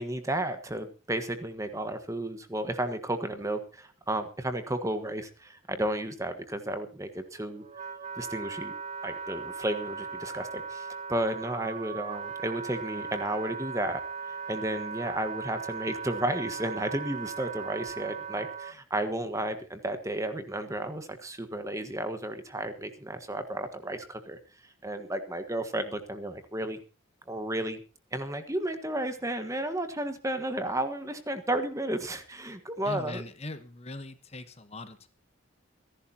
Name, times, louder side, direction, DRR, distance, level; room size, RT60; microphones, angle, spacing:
voice 1, 0.0-7.6 8.2-8.7 9.0-14.0 14.3-24.4 24.8-26.8 27.3-27.8 28.1-33.2, right 1 dB, 15° right, 8 dB, 1.4 m, -33 dB
Wind instrument woodwind instrument, 7.1-18.8, right 5 dB, 30° right, 0.9 m, -38 dB
voice 2, 32.8-35.1, left 2 dB, 30° left, 10 dB, 1.1 m, -40 dB
28.5 x 11.5 x 2.9 m, 0.33 s
head